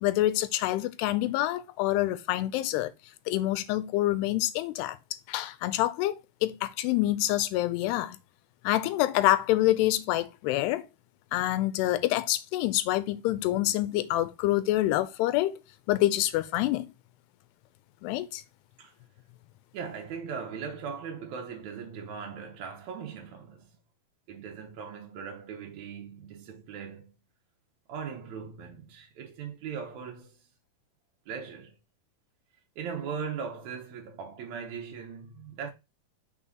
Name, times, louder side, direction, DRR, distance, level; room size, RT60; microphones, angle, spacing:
voice 1, 0.0-2.9 3.3-5.0 5.3-8.2 8.6-10.9 11.3-15.6 15.9-16.9 18.0-18.4, left 15 dB, 85° left, 2.7 m, -27 dB
voice 2, 19.7-23.8 24.3-27.1 27.9-30.5 31.3-31.8 32.7-35.7, right 6 dB, 85° right, 1.6 m, -39 dB
6.2 x 4.1 x 3.8 m
omnidirectional pair, 4.7 m